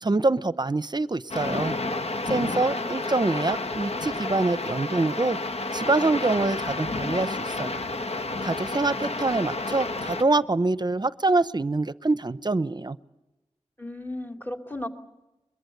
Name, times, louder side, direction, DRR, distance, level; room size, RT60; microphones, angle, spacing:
voice 1, 0.0-1.7 2.2-5.4 5.7-7.9 8.4-13.0, right 2 dB, 35° right, 15 dB, 0.8 m, -25 dB
sound 1, 1.3-10.2, left 2 dB, 60° left, 1.2 m, -30 dB
voice 2, 2.5-3.1 13.8-14.9, left 1 dB, 15° left, 4 dB, 2.8 m, -36 dB
22.5 x 22.5 x 8.0 m, 1.0 s
wide cardioid pair, 80°, 12 cm